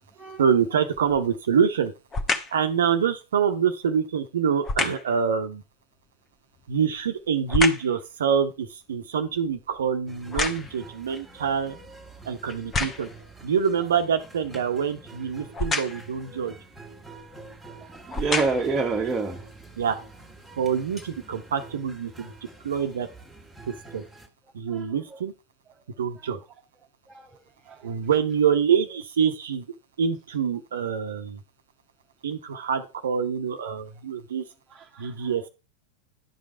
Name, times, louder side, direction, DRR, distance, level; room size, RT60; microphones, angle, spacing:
voice 1, 0.4-1.9 2.5-5.6 6.7-11.8 12.3-13.1 13.4-16.5 19.8-20.0 20.6-22.3 22.6-23.1 23.9-24.0 24.5-25.3 26.0-26.4 27.8-29.6 30.0-31.4 32.2-34.4 35.0-35.5, right 7 dB, 65° right, 0.9 m, -25 dB
sound 1, 0.9-1.3 2.1-2.6 4.6-5.1 6.5-8.0 8.4-10.9 11.6-11.7 12.5-13.2 15.5-16.1 17.2-17.3 18.0-18.8 19.4-19.5, left 3 dB, 20° left, 1.1 m, -29 dB
sound 2, 10.1-24.3, right 2 dB, ahead, 1.8 m, -47 dB
voice 2, 18.0-19.4 24.7-24.8 25.1-25.2 27.1-27.3 27.7-27.9 34.7-35.1, right 4 dB, 20° right, 1.2 m, -28 dB
11.0 x 5.3 x 4.5 m
figure-of-eight pair, 90°, 0 cm